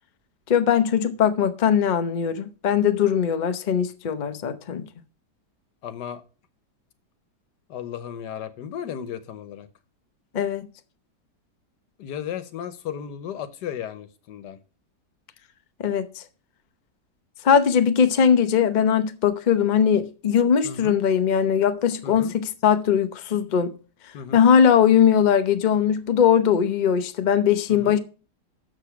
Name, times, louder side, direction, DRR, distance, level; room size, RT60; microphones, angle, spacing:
voice 1, 0.5-4.8 10.3-10.7 15.8-16.2 17.4-23.8 24.3-28.0, left 8 dB, 45° left, 0.6 m, -20 dB
voice 2, 5.8-6.2 7.7-9.7 12.0-14.6 20.6-21.0 22.0-22.3 24.1-24.5 27.7-28.0, left 9 dB, 80° left, 1.5 m, -35 dB
7.1 x 6.7 x 5.8 m
omnidirectional pair, 1.8 m